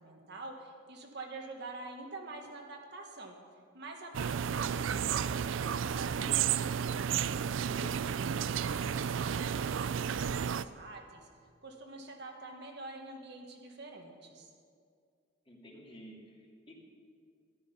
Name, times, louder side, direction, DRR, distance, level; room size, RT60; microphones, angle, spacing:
voice 1, 0.0-3.4 3.7-7.1 7.7-8.2 8.5-11.3 11.6-14.5, right 2 dB, 60° right, 2 dB, 1.6 m, -47 dB
sound 1, 4.1-10.6, right 8 dB, 80° right, 0.4 m, -32 dB
voice 2, 15.5-16.8, equal, 25° left, -2 dB, 2.6 m, -53 dB
13.5 x 12.0 x 5.5 m, 2.2 s
head